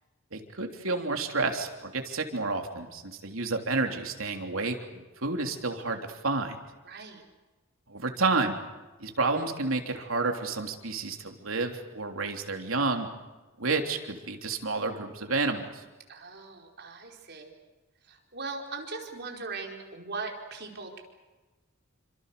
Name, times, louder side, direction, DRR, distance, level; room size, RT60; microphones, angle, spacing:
voice 1, 0.3-6.6 7.9-8.6 9.0-13.1 13.6-15.8, right 3 dB, 85° right, 4 dB, 3.3 m, -30 dB
voice 2, 6.8-7.2 16.1-17.5 18.1-21.0, right 4 dB, 55° right, 1 dB, 4.8 m, -39 dB
28.5 x 26.0 x 6.8 m, 1.2 s
head